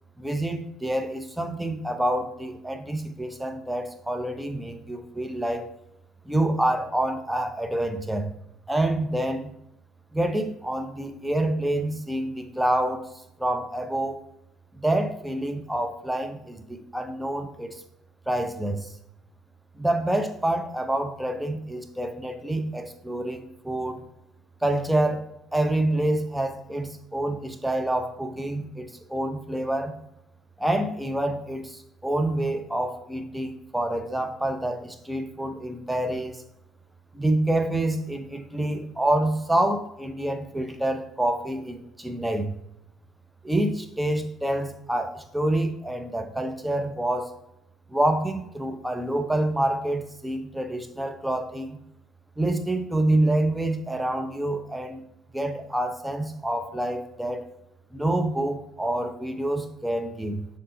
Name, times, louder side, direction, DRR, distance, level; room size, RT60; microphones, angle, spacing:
voice 1, 0.2-5.7 6.2-8.3 8.7-9.5 10.1-13.1 13.4-14.2 14.7-17.8 18.3-18.9 19.8-24.0 24.6-29.9 30.6-36.4 37.1-42.6 43.4-47.3 47.9-51.8 52.4-55.0 55.3-57.4 57.9-60.5, right 1 dB, 5° right, 7 dB, 0.8 m, -27 dB
6.8 x 3.8 x 4.1 m, 0.83 s
hypercardioid pair, 55°, 0 cm